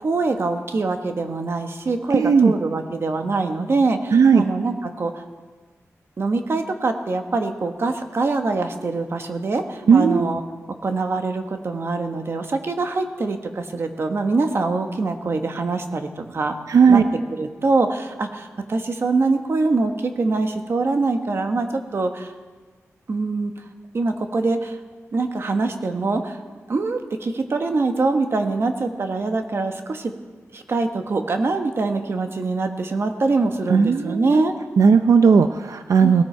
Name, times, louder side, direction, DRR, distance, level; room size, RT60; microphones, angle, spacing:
voice 1, 0.0-5.1 6.2-10.4 10.7-16.5 16.9-17.0 17.3-22.3 23.1-23.5 23.9-24.8 25.1-26.4 26.7-30.1 30.5-34.5 36.0-36.2, right 3 dB, 50° right, 5 dB, 1.3 m, -24 dB
voice 2, 2.1-2.5 4.1-4.5 9.9-10.3 16.7-17.0 33.7-34.3 34.8-36.2, right 5 dB, 85° right, 8 dB, 0.6 m, -15 dB
18.0 x 17.5 x 4.5 m, 1.4 s
wide cardioid pair, 155°, 5 cm